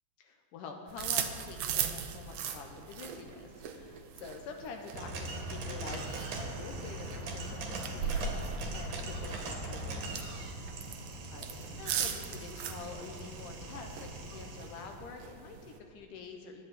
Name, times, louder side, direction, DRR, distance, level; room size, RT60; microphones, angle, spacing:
voice 1, 0.2-10.4 11.3-16.7, left 5 dB, 75° left, 3 dB, 2.3 m, -47 dB
sound 1, 0.9-15.8, right 7 dB, 90° right, 1.4 m, -40 dB
sound 2, 4.9-14.9, right 2 dB, 70° right, 3.1 m, -40 dB
21.0 x 8.4 x 4.1 m, 2.5 s
omnidirectional pair, 4.0 m